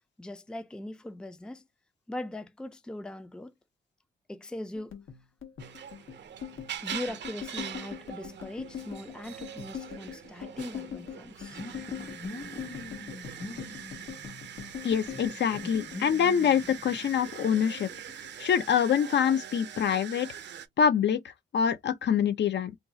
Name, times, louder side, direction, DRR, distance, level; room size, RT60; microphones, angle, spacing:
voice 1, 0.2-1.7 2.1-3.5 4.3-5.0 6.8-11.6, left 1 dB, 5° left, 0.4 m, -40 dB
sound 1, 4.7-17.3 17.6-18.6 18.9-19.3 19.6-20.3, left 8 dB, 85° left, 1.2 m, -43 dB
sound 2, 5.6-20.7, right 9 dB, 60° right, 0.6 m, -43 dB
sound 3, 5.8-19.0, left 2 dB, 40° left, 1.1 m, -48 dB
voice 2, 14.8-17.9 18.4-20.3 20.8-21.2 21.5-22.8, left 8 dB, 60° left, 0.5 m, -25 dB
2.5 x 2.3 x 3.9 m
cardioid pair, 105°, 20 cm